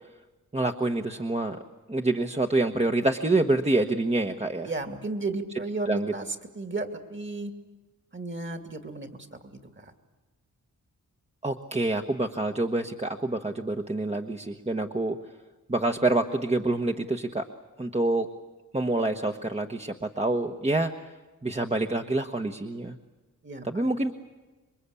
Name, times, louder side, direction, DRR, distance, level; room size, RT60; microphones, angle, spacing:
voice 1, 0.5-1.6 1.9-4.7 5.9-6.1 11.4-15.2 15.7-17.5 17.8-18.3 18.7-20.9 21.4-22.9 23.6-24.1, right 2 dB, 20° right, 4 dB, 1.2 m, -27 dB
voice 2, 4.6-7.5 8.1-9.9 23.4-23.9, right 2 dB, 35° right, 7 dB, 2.7 m, -34 dB
27.0 x 23.0 x 8.4 m, 1.2 s
wide cardioid pair, 80°, 33 cm